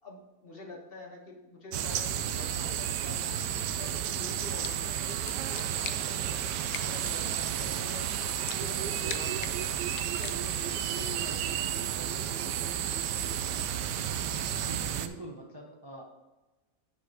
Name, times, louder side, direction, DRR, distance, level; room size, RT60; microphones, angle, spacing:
voice 1, 0.0-6.5 6.8-8.2 8.6-9.8 10.1-13.5, left 2 dB, 35° left, -1 dB, 1.4 m, -47 dB
sound 1, 1.7-15.1, right 10 dB, 85° right, 1.2 m, -32 dB
sound 2, 4.3-10.8, left 9 dB, 70° left, 0.9 m, -45 dB
voice 2, 14.6-16.0, right 2 dB, 25° right, -1 dB, 0.6 m, -43 dB
8.6 x 4.5 x 4.8 m, 1.1 s
omnidirectional pair, 1.8 m